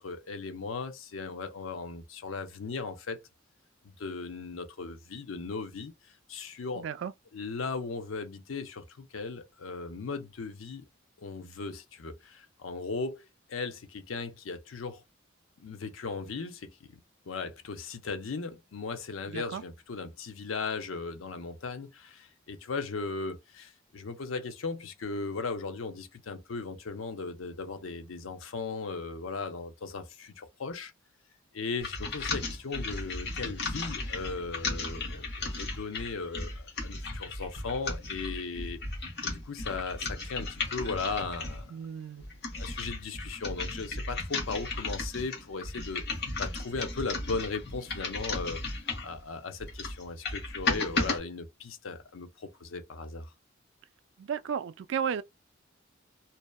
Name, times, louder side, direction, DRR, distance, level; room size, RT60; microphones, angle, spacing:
voice 1, 0.0-3.2 3.8-6.9 7.3-10.9 11.2-15.0 15.6-17.0 17.3-30.9 31.5-38.8 39.2-41.7 42.5-48.6 49.0-53.3, left 4 dB, 85° left, 0.6 m, -37 dB
voice 2, 6.8-7.1 19.3-19.6 41.7-42.2 54.2-55.2, right 7 dB, 65° right, 0.3 m, -34 dB
sound 1, 31.8-41.7 42.2-49.2 49.6-51.2, left 3 dB, 55° left, 1.0 m, -35 dB
2.7 x 2.1 x 2.3 m
head